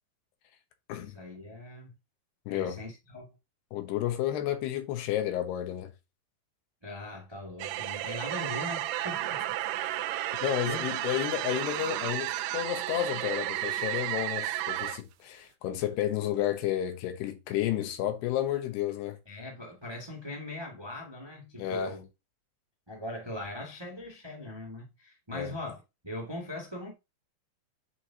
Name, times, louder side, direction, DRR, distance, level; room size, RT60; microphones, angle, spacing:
voice 1, 0.9-1.9 2.5-3.3 6.8-9.5 10.6-11.0 11.4-11.6 19.2-22.1 22.9-26.9, left 1 dB, 30° right, 0.5 m, -40 dB
voice 2, 2.5-2.8 3.7-5.9 10.4-19.2 21.6-22.0 25.3-25.5, left 12 dB, 80° left, 3.1 m, -31 dB
sound 1, 7.6-15.0, right 14 dB, 85° right, 2.5 m, -33 dB
8.3 x 4.9 x 2.8 m
omnidirectional pair, 4.7 m